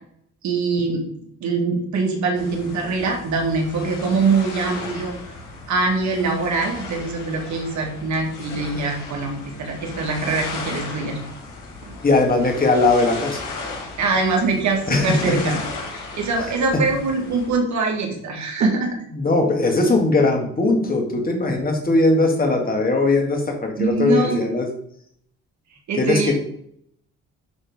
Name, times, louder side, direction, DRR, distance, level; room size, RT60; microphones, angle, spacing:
voice 1, 0.4-1.0 1.4-5.1 5.7-11.2 11.8-11.9 14.0-15.6 15.9-19.0 23.8-24.4 25.9-26.3, right 3 dB, 70° right, 2 dB, 2.0 m, -23 dB
sound 1, 2.3-17.5, left 3 dB, 85° left, 2.6 m, -35 dB
voice 2, 12.0-13.4 14.9-15.5 16.4-16.8 19.1-24.7 26.0-26.3, left 2 dB, 30° left, 1 dB, 2.1 m, -19 dB
11.0 x 3.7 x 3.6 m, 0.67 s
cardioid pair, 90°, 30 cm